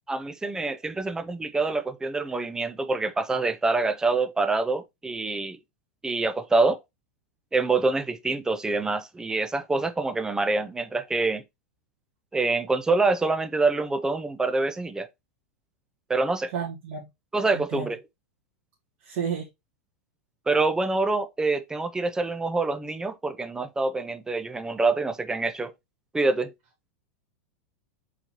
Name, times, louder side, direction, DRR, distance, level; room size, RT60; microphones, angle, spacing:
voice 1, 0.1-5.6 6.0-6.8 7.5-11.4 12.3-15.1 16.1-16.5 17.3-18.0 20.5-25.7 26.1-26.5, right 3 dB, 10° right, 0.4 m, -26 dB
voice 2, 16.5-17.1 17.5-17.9 19.0-19.5, right 7 dB, 55° right, 1.7 m, -31 dB
4.4 x 4.0 x 2.9 m
supercardioid pair, 135°, 8 cm